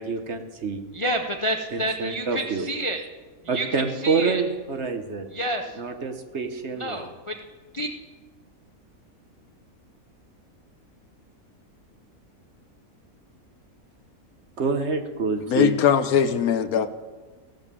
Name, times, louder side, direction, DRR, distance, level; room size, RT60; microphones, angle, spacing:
voice 1, 0.0-0.8 1.7-2.7 3.5-5.3 5.8-7.1 14.6-15.7, right 4 dB, 50° right, 7 dB, 1.2 m, -27 dB
voice 2, 0.9-3.0 3.4-4.4 5.3-5.8 6.7-7.4 7.7-7.9, right 1 dB, 35° left, 4 dB, 0.5 m, -29 dB
voice 3, 15.5-16.9, left 8 dB, 80° left, 12 dB, 1.2 m, -20 dB
16.0 x 7.0 x 6.9 m, 1.3 s
omnidirectional pair, 1.5 m